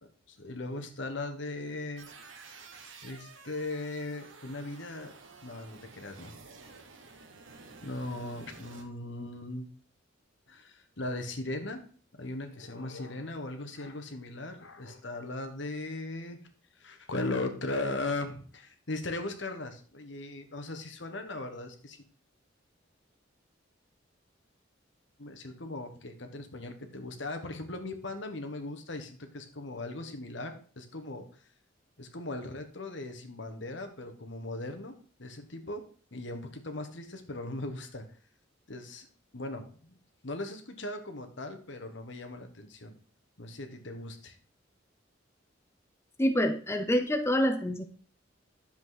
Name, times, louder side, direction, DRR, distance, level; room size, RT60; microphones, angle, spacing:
voice 1, 0.3-2.1 3.0-5.1 5.4-6.4 7.8-9.7 10.5-11.8 12.1-16.4 16.7-22.0 25.2-31.3 32.0-35.8 36.1-38.0 38.7-39.1 39.3-40.0 40.2-43.0 43.4-44.4, left 2 dB, 65° left, 6 dB, 1.5 m, -38 dB
sound 1, 2.0-8.8, right 4 dB, 80° right, 1.5 m, -51 dB
voice 2, 46.2-47.8, equal, 15° left, 7 dB, 0.6 m, -26 dB
10.5 x 7.3 x 4.1 m, 0.43 s
head